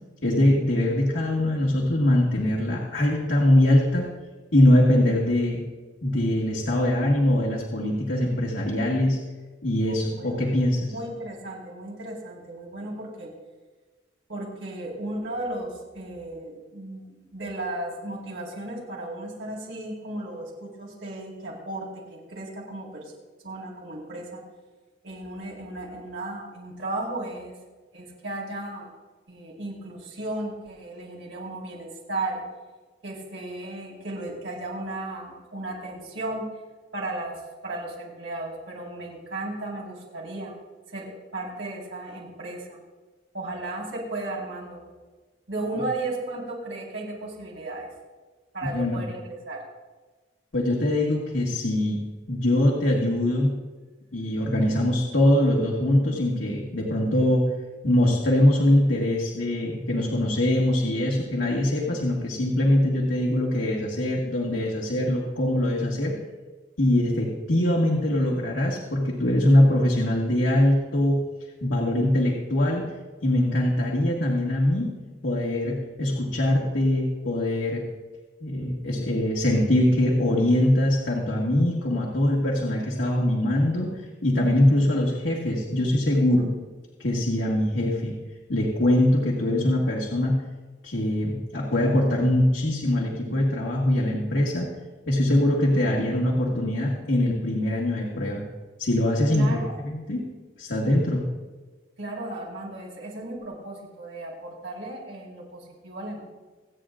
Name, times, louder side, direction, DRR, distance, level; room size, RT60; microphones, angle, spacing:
voice 1, 0.2-4.1 4.5-5.6 6.0-9.2 9.6-10.9 48.7-49.0 50.5-52.0 52.3-53.6 54.1-57.4 57.8-66.1 66.8-71.2 71.6-72.9 73.2-74.9 75.2-77.8 78.4-83.9 84.2-86.5 87.0-88.1 88.5-90.4 90.8-94.7 95.1-98.4 98.8-99.6 99.8-100.2 100.6-101.3, left 1 dB, 85° left, -4 dB, 1.9 m, -22 dB
voice 2, 9.9-10.4 10.9-13.3 14.3-23.1 23.4-24.4 25.0-27.5 27.9-28.9 29.3-32.4 33.0-36.4 36.9-37.3 37.6-40.6 40.9-42.8 43.3-44.8 45.5-47.9 48.5-49.6 99.3-99.8 102.0-106.2, right 2 dB, 85° right, -3 dB, 4.2 m, -35 dB
26.0 x 9.0 x 2.5 m, 1.3 s
head